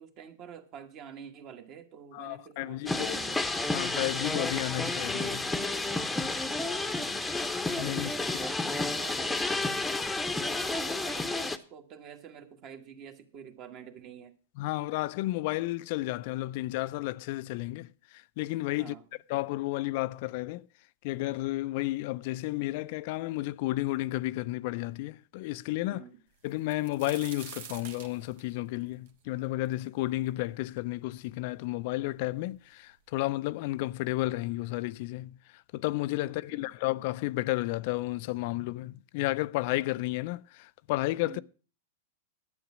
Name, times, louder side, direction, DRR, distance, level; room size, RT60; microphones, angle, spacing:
voice 1, 0.0-3.4 6.9-7.2 8.0-9.5 10.2-14.3 18.8-19.0 25.9-26.2 36.2-36.7 41.2-41.4, right 7 dB, 40° right, 1.6 m, -48 dB
voice 2, 2.1-3.1 3.7-5.5 7.8-8.5 14.6-18.9 19.3-20.7 21.0-26.0 26.4-41.4, left 18 dB, 50° left, 0.4 m, -32 dB
sound 1, 2.9-11.6, left 2 dB, 5° left, 0.9 m, -31 dB
sound 2, 26.4-30.3 30.8-30.9 31.6-31.7 32.0-32.7 33.5-33.6 34.0-34.2, right 8 dB, 65° right, 1.5 m, -47 dB
10.5 x 8.7 x 6.2 m
hypercardioid pair, 135°, 0 cm